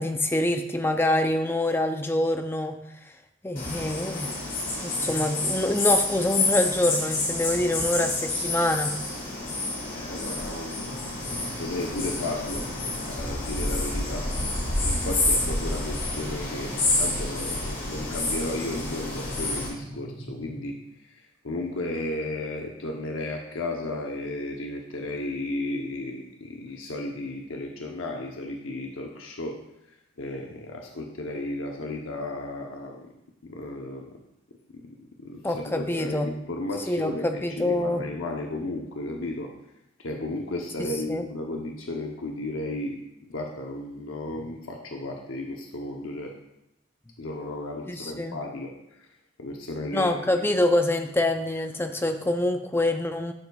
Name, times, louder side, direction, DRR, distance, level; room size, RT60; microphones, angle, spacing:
voice 1, 0.0-2.8 3.4-4.3 4.8-8.9 35.4-36.3 36.9-38.0 40.8-41.2 47.9-48.4 49.9-53.3, left 1 dB, 10° left, 6 dB, 0.5 m, -25 dB
sound 1, 3.6-19.7, left 2 dB, 45° left, 2.5 m, -28 dB
voice 2, 10.0-11.0 11.3-12.7 13.0-14.3 14.8-29.6 29.9-33.1 33.4-34.2 34.7-39.5 40.0-43.0 43.3-46.3 47.2-49.1 49.4-50.1, left 2 dB, 90° left, 1 dB, 0.8 m, -34 dB
sound 2, 10.7-20.7, equal, 65° left, 2.5 m, -43 dB
11.5 x 6.8 x 2.3 m, 0.84 s
head